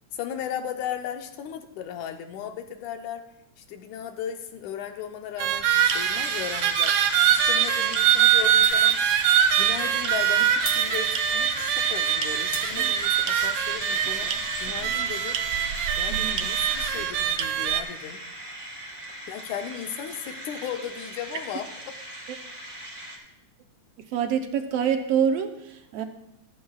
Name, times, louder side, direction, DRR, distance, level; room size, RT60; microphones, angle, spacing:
voice 1, 0.1-3.2 3.6-7.0 7.3-9.0 9.6-14.3 14.6-15.4 16.0-18.2 19.3-22.0, left 9 dB, 85° left, 6 dB, 2.3 m, -36 dB
sound 1, 5.4-17.8, right 9 dB, 85° right, 1.3 m, -23 dB
sound 2, 5.7-23.2, right 1 dB, 15° right, 1.4 m, -36 dB
Shatter, 8.6-9.2 9.5-9.6 10.6-11.7 12.5-13.5, left 3 dB, 40° left, 1.2 m, -39 dB
voice 2, 24.1-26.0, right 8 dB, 70° right, 6 dB, 1.6 m, -26 dB
14.5 x 13.5 x 2.4 m, 0.85 s
omnidirectional pair, 3.4 m